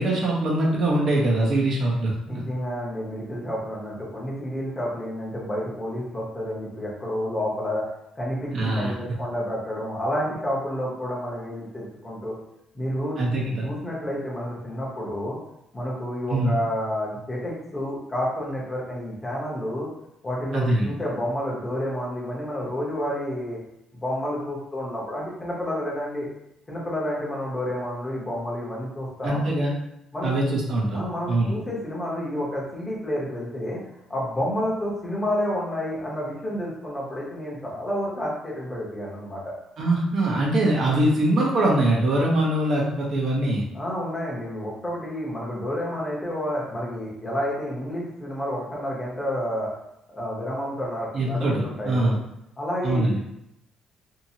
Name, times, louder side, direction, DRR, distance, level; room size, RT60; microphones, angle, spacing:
voice 1, 0.0-2.4 8.5-8.9 13.2-13.7 16.3-16.6 20.5-20.9 29.2-29.7 30.2-31.0 31.3-31.6 39.8-43.6 51.1-52.2 52.8-53.2, right 1 dB, 50° right, -3 dB, 0.7 m, -23 dB
voice 2, 2.3-7.9 8.2-12.3 12.7-13.4 13.6-15.4 15.7-19.9 20.2-23.6 23.9-26.3 26.7-29.7 30.1-30.3 30.9-33.8 34.1-39.5 43.7-49.7 50.1-52.2 52.6-53.2, equal, 15° left, -4 dB, 0.8 m, -30 dB
2.7 x 2.6 x 2.8 m, 0.82 s
cardioid pair, 145°, 0 cm